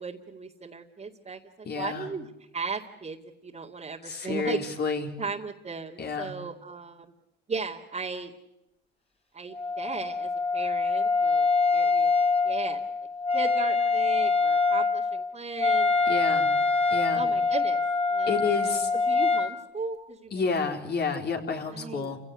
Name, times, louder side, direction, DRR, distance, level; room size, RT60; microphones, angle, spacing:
voice 1, 0.0-2.3 2.5-3.2 3.4-4.6 5.2-7.1 7.5-8.3 9.3-12.8 13.3-16.3 17.1-17.8 18.1-18.4 18.6-20.4 21.7-22.2, right 4 dB, 35° right, -2 dB, 2.4 m, -36 dB
voice 2, 1.6-2.1 4.0-5.1 6.0-6.3 16.1-16.5 16.9-17.2 18.2-18.9 20.3-22.2, left 5 dB, 55° left, 4 dB, 4.3 m, -30 dB
Wind instrument woodwind instrument, 9.5-19.5, left 4 dB, 30° left, 3.6 m, -25 dB
29.5 x 17.0 x 9.9 m, 0.87 s
cardioid pair, 90°, 20 cm